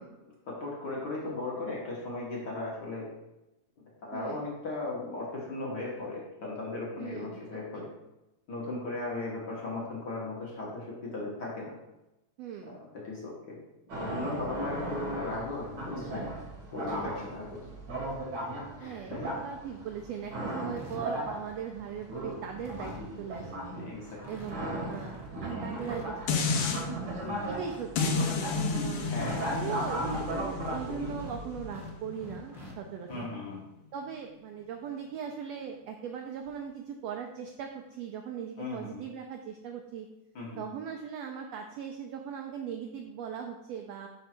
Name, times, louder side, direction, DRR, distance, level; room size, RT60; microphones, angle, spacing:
voice 1, 0.2-3.1 4.0-7.9 8.5-11.7 12.7-12.8 13.0-13.6 13.9-16.3 16.7-17.5 18.8-19.2 23.8-24.2 27.2-27.6 29.0-29.5 33.1-33.6 38.6-39.0 40.3-40.6, left 2 dB, 50° left, -4 dB, 1.4 m, -37 dB
voice 2, 4.1-4.4 7.0-7.4 7.7-7.8 12.4-12.8 18.8-23.6 24.3-26.9 27.5-29.1 29.4-33.3 33.9-40.1 40.6-44.1, right 7 dB, 80° right, 3 dB, 1.4 m, -39 dB
sound 1, 13.9-31.7, right 1 dB, 55° right, 1.3 m, -37 dB
sound 2, 20.7-21.0 21.6-22.0 22.3-22.4 22.6-23.1 23.6-23.7 23.9-24.0 24.2-24.5 24.8-25.3 25.7-26.7 27.1-27.8 28.3-30.7 31.1-32.7 33.0-33.2 34.6-34.7 35.1-35.2 36.4-36.6, left 1 dB, 5° right, 0.4 m, -47 dB
sound 3, 26.3-26.8 28.0-33.1 33.6-33.7, left 5 dB, 85° left, 1.3 m, -32 dB
5.4 x 4.9 x 4.3 m, 0.94 s
omnidirectional pair, 3.4 m